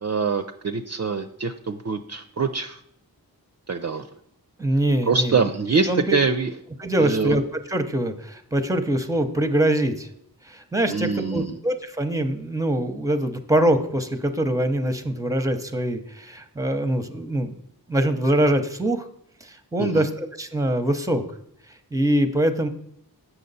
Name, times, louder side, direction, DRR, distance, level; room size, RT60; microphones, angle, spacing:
voice 1, 0.0-2.8 3.7-4.1 5.1-6.5 7.0-7.4 10.9-11.5 19.8-20.1, right 4 dB, 45° right, 7 dB, 0.5 m, -24 dB
voice 2, 4.6-5.4 5.9-6.0 6.8-10.1 10.5-17.6 17.9-19.1 19.4-21.2 21.9-22.7, right 1 dB, 10° right, 9 dB, 0.7 m, -23 dB
7.6 x 6.0 x 4.0 m, 0.72 s
wide cardioid pair, 45°, 38 cm